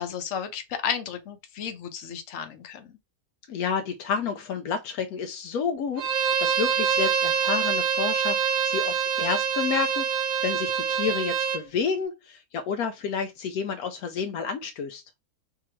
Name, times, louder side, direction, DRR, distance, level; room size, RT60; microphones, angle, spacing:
voice 1, 0.0-2.9, left 8 dB, 60° left, 1.2 m, -33 dB
voice 2, 3.5-15.0, left 6 dB, 80° left, 1.1 m, -30 dB
Bowed string instrument, 6.0-11.6, right 7 dB, 65° right, 0.9 m, -25 dB
3.7 x 2.7 x 4.4 m
omnidirectional pair, 1.6 m